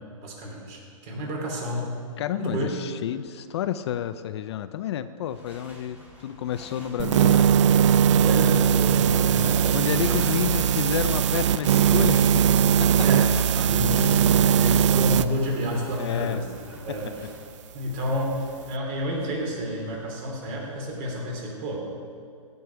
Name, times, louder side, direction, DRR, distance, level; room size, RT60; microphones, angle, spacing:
voice 1, 0.2-1.9 2.4-2.7 8.1-10.2 13.0-16.4 16.8-17.3 17.7-21.8, equal, 35° right, -1 dB, 3.1 m, -30 dB
voice 2, 2.2-7.5 7.8-8.1 9.7-13.0 14.3-14.6 16.0-16.4, left 10 dB, 50° left, 12 dB, 0.5 m, -31 dB
sound 1, 5.2-21.1, right 1 dB, 10° right, 2.2 m, -44 dB
sound 2, 7.0-15.3, right 8 dB, 60° right, 0.4 m, -20 dB
16.5 x 5.4 x 5.7 m, 2.4 s
hypercardioid pair, 135°, 18 cm